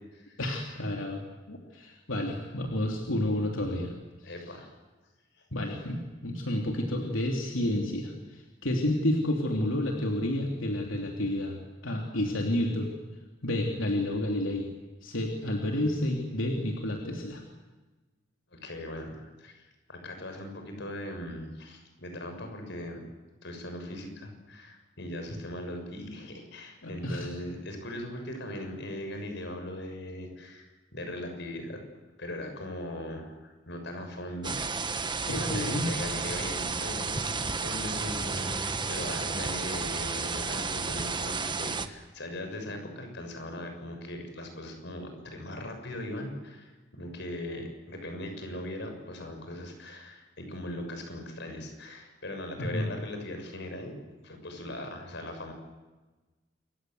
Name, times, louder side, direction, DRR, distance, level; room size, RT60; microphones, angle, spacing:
voice 1, 0.4-1.2 1.5-3.9 5.5-11.6 11.8-12.9 13.4-14.7 15.0-17.4 26.8-27.3 35.3-35.9 52.6-52.9, left 1 dB, 90° left, 1 dB, 3.3 m, -30 dB
voice 2, 4.2-4.7 5.4-5.5 18.5-23.0 23.4-31.8 32.2-34.6 34.9-53.9 54.2-55.5, left 1 dB, 60° left, 5 dB, 7.0 m, -39 dB
sound 1, 34.4-41.9, right 4 dB, 25° right, 1.4 m, -32 dB
Bowed string instrument, 38.2-41.3 41.7-41.8, equal, ahead, 1.0 m, -45 dB
28.0 x 24.0 x 8.0 m, 1.2 s
head